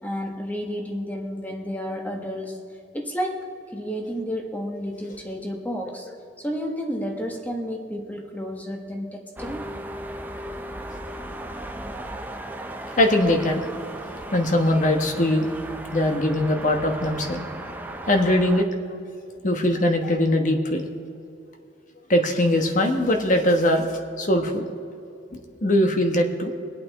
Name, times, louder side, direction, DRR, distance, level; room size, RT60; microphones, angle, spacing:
voice 1, 0.0-2.6 2.9-9.7, equal, 10° left, 1 dB, 1.3 m, -31 dB
sound 1, 9.4-18.6, right 1 dB, 10° right, 0.6 m, -36 dB
voice 2, 13.0-13.6 14.3-15.5 15.9-17.4 18.1-18.7 19.4-20.8 22.1-23.9 24.2-24.6 25.3-26.5, left 1 dB, 40° left, 4 dB, 1.3 m, -21 dB
24.5 x 8.6 x 3.6 m, 2.7 s
head